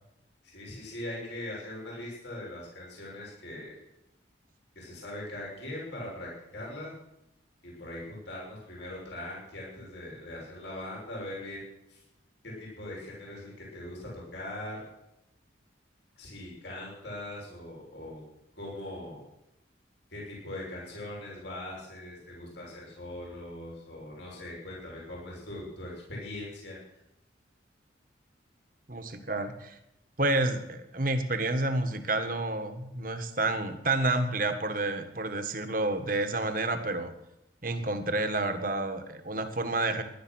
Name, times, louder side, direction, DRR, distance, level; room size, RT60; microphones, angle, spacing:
voice 1, 0.4-3.8 4.7-6.9 7.6-12.0 12.4-14.8 16.2-18.2 18.6-19.2 20.1-26.8, left 1 dB, 65° left, -4 dB, 6.6 m, -41 dB
voice 2, 28.9-29.8 30.2-37.1 37.6-40.0, right 2 dB, 45° right, 8 dB, 1.7 m, -29 dB
16.5 x 11.5 x 6.4 m, 0.85 s
head